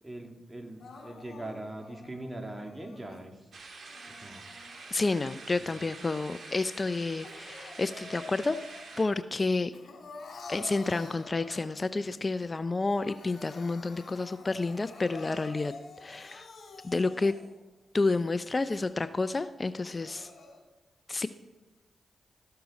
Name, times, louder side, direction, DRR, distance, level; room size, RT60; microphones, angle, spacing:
voice 1, 0.0-3.5 4.1-4.4 5.6-5.7, right 1 dB, 20° right, 4 dB, 1.8 m, -41 dB
Crying sobbing, 0.8-3.2 3.9-5.6 6.1-9.0 9.3-12.0 12.4-12.5 12.8-17.6 18.2-18.3 18.8-18.9 19.7-20.6, left 3 dB, 65° left, 2.5 m, -49 dB
sound 1, 3.5-9.0, right 3 dB, 60° right, 1.6 m, -47 dB
voice 2, 4.9-8.6 9.0-9.7 10.5-15.7 16.0-16.5 16.8-17.3 17.9-20.3 21.1-21.3, left 3 dB, 35° left, 13 dB, 0.4 m, -30 dB
13.5 x 6.7 x 4.1 m, 1.2 s
supercardioid pair, 45°, 0 cm